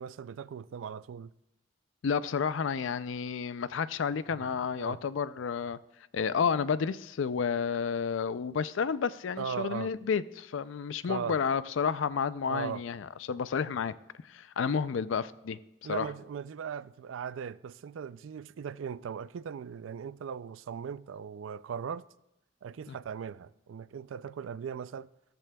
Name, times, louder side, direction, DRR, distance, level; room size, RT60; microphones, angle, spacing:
voice 1, 0.0-1.3 4.3-4.4 4.8-5.0 9.4-9.9 11.0-11.4 12.5-12.8 15.8-22.1 22.6-25.1, right 7 dB, 90° right, 0.3 m, -38 dB
voice 2, 2.0-5.8 6.1-13.9 14.2-15.6 15.9-16.1 22.9-23.0, left 6 dB, 80° left, 0.4 m, -31 dB
14.0 x 13.5 x 2.3 m
head